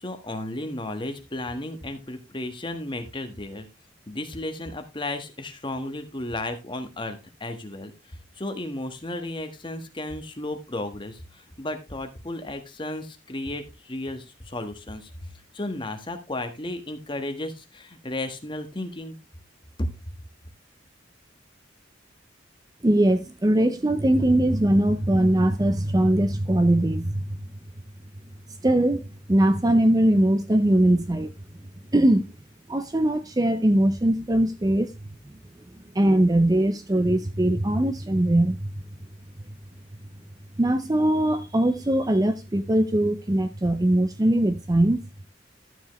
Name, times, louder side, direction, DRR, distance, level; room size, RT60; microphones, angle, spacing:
voice 1, 0.0-3.7 4.1-7.9 8.4-15.1 15.5-19.1 19.8-19.9, left 1 dB, 25° left, 1.4 m, -33 dB
voice 2, 22.8-27.2 28.6-31.3 31.9-32.3 32.7-34.9 35.9-38.7 40.6-45.0, right 1 dB, 20° right, 0.6 m, -21 dB
12.5 x 7.2 x 3.1 m
head